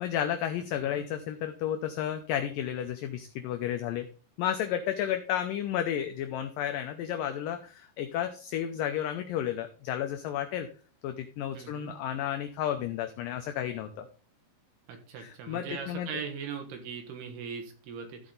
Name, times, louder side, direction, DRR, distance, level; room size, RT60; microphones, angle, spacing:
voice 1, 0.0-4.1 4.4-10.7 11.0-14.1 15.2-16.1, left 10 dB, 80° left, 6 dB, 2.0 m, -32 dB
voice 2, 11.5-11.9 14.9-18.2, right 6 dB, 80° right, 5 dB, 3.3 m, -40 dB
14.5 x 4.9 x 3.9 m, 0.38 s
omnidirectional pair, 4.6 m